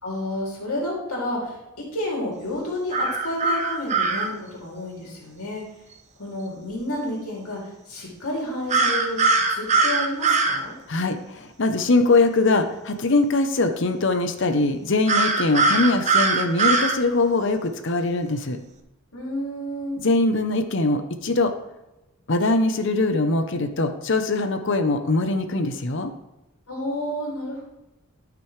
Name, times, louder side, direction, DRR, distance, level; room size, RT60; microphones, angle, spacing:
voice 1, 0.0-5.6 6.2-10.7 19.1-20.0 26.7-27.6, left 1 dB, 80° left, -3 dB, 2.8 m, -30 dB
sound 1, 2.9-4.3 8.7-10.6 15.1-17.0, right 3 dB, 30° right, 0.8 m, -21 dB
voice 2, 10.9-18.6 20.0-21.5 22.3-26.1, left 2 dB, 55° left, 7 dB, 0.8 m, -22 dB
13.5 x 6.0 x 3.3 m, 0.98 s
head